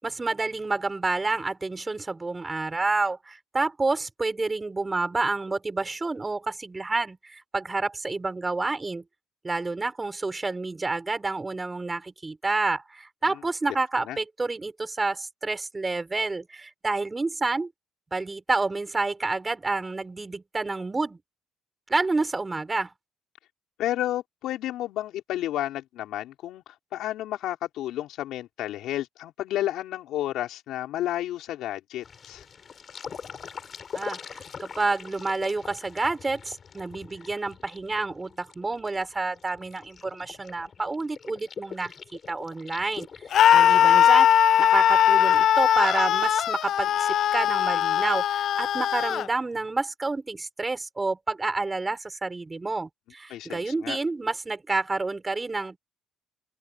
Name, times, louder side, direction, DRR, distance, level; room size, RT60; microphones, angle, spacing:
voice 1, 0.0-9.0 9.4-17.7 18.1-21.2 21.9-22.9 33.9-44.3 44.6-55.8, right 3 dB, 15° right, 6.5 m, -29 dB
voice 2, 23.8-32.4 43.5-43.8 53.3-54.0, left 13 dB, 75° left, 5.1 m, -31 dB
sound 1, 32.0-44.2, left 6 dB, 35° left, 7.4 m, -43 dB
Screaming, 43.3-49.3, left 10 dB, 55° left, 0.4 m, -20 dB
cardioid pair, 130°, 0 cm